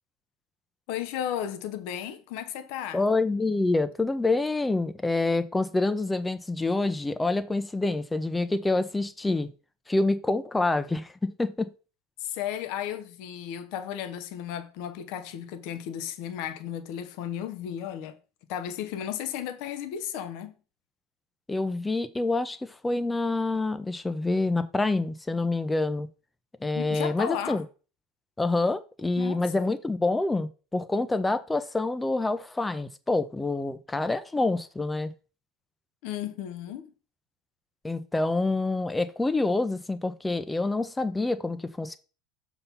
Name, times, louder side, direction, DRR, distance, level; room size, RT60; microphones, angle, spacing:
voice 1, 0.9-3.0 12.2-18.2 18.5-20.5 26.7-27.6 29.2-29.7 36.0-36.9, left 10 dB, 60° left, 1.0 m, -34 dB
voice 2, 2.9-9.5 9.9-11.7 21.5-26.1 26.6-27.6 28.4-35.1 37.8-42.0, left 2 dB, 10° left, 0.9 m, -27 dB
6.7 x 4.0 x 5.8 m
hypercardioid pair, 75°, 0 cm